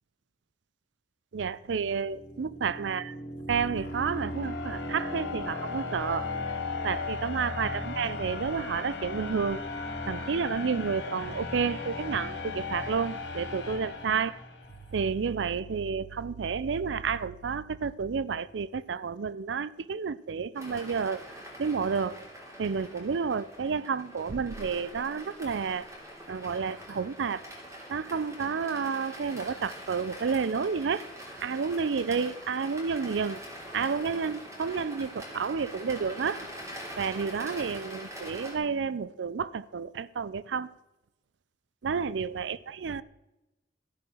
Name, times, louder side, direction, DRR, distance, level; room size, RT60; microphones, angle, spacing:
voice 1, 1.3-3.2 3.5-6.3 6.8-9.6 10.1-14.4 14.9-21.3 21.6-22.3 22.6-25.9 26.3-27.4 27.9-31.1 31.4-33.4 33.7-36.5 37.0-40.7 41.8-43.0, right 5 dB, 75° right, 0.5 m, -30 dB
sound 1, 1.9-14.8, left 3 dB, 70° left, 2.2 m, -36 dB
sound 2, 20.5-38.6, equal, 15° right, 3.2 m, -44 dB
sound 3, 24.3-25.9, right 2 dB, 55° right, 0.9 m, -46 dB
14.0 x 7.4 x 6.2 m
head